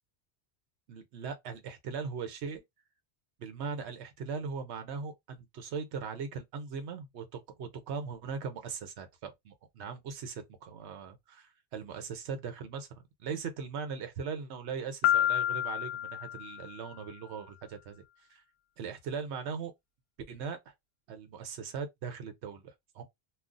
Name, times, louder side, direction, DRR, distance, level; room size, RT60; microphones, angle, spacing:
voice 1, 0.9-2.6 3.4-7.3 7.6-12.9 13.2-18.0 18.3-18.4 18.8-19.7 20.3-20.6 21.1-23.0, right 5 dB, 85° right, 1.0 m, -39 dB
Piano, 15.0-16.9, left 12 dB, 70° left, 0.8 m, -29 dB
2.4 x 2.4 x 3.7 m
omnidirectional pair, 1.1 m